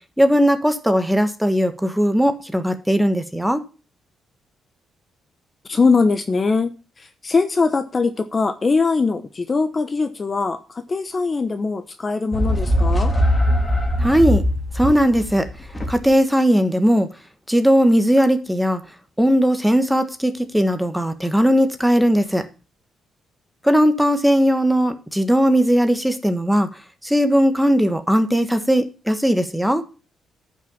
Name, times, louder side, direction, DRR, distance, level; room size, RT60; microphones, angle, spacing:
voice 1, 0.2-3.6 14.0-14.4 14.7-15.5 15.9-17.1 17.5-18.8 19.2-22.5 23.6-26.7 27.0-29.8, equal, ahead, 9 dB, 1.4 m, -18 dB
voice 2, 5.7-13.1, left 4 dB, 30° left, 9 dB, 0.9 m, -21 dB
sound 1, 12.3-16.1, equal, 15° left, 2.8 m, -20 dB
10.5 x 5.9 x 7.2 m, 0.33 s
cardioid pair, 90°, 0 cm